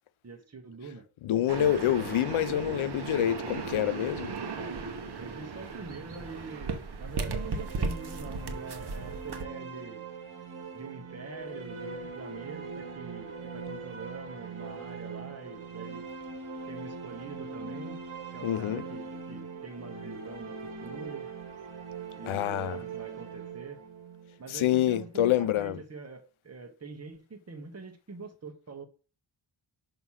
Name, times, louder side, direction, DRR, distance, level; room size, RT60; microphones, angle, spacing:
voice 1, 0.2-1.0 4.5-4.8 5.2-10.0 10.7-16.0 16.7-18.0 18.3-21.3 22.2-23.8 24.4-28.8, right 4 dB, 30° right, 1.1 m, -44 dB
voice 2, 1.2-4.3 18.4-18.8 22.2-22.8 24.5-25.8, left 11 dB, 80° left, 0.6 m, -27 dB
sound 1, 1.5-9.4, right 4 dB, 55° right, 1.1 m, -36 dB
sound 2, 7.2-25.1, right 4 dB, 80° right, 1.5 m, -42 dB
6.0 x 3.0 x 5.6 m
cardioid pair, 70°, 48 cm